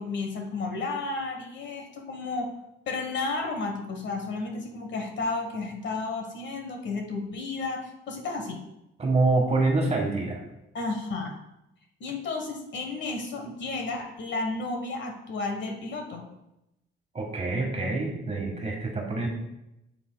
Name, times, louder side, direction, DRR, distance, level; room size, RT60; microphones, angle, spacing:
voice 1, 0.0-2.5 2.9-8.6 10.7-11.4 12.0-16.3, left 3 dB, 65° left, 3 dB, 1.3 m, -32 dB
voice 2, 9.0-10.4 17.1-19.3, right 3 dB, 30° right, 0 dB, 1.6 m, -26 dB
8.6 x 8.4 x 2.3 m, 0.89 s
cardioid pair, 90°, 20 cm